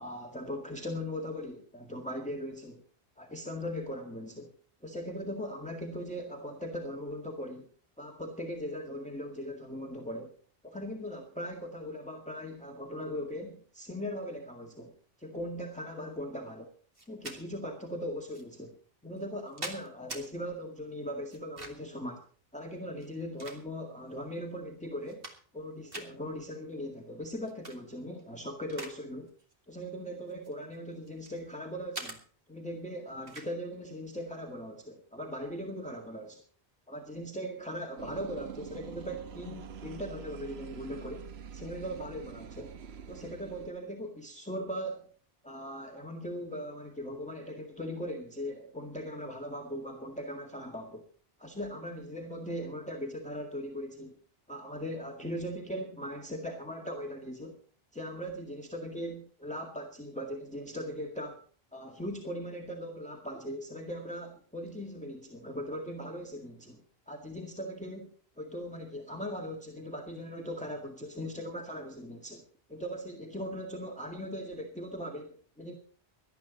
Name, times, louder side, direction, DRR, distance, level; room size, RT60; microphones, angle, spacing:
voice 1, 0.0-2.8 3.2-4.5 4.8-7.7 8.0-10.3 10.6-14.9 15.2-16.7 17.1-18.8 19.0-22.2 22.5-25.3 25.5-29.3 29.7-32.2 32.5-36.4 36.9-42.7 43.1-45.1 45.4-51.0 51.4-54.2 54.5-57.6 57.9-61.4 61.7-72.4 72.7-75.8, equal, 5° left, 1 dB, 1.9 m, -39 dB
sound 1, 16.9-17.4 18.3-18.4 19.2-20.2 21.3-21.9 22.9-24.0 24.5-24.6 25.0-25.6 25.9-26.1 27.4-27.8 28.2-29.0 29.3-29.5 30.3-31.4 31.9-32.2 33.3-33.5, right 2 dB, 60° right, 2.7 m, -43 dB
sound 2, 38.0-43.7, right 7 dB, 90° right, 1.1 m, -45 dB
18.5 x 12.5 x 4.0 m, 0.43 s
omnidirectional pair, 1.0 m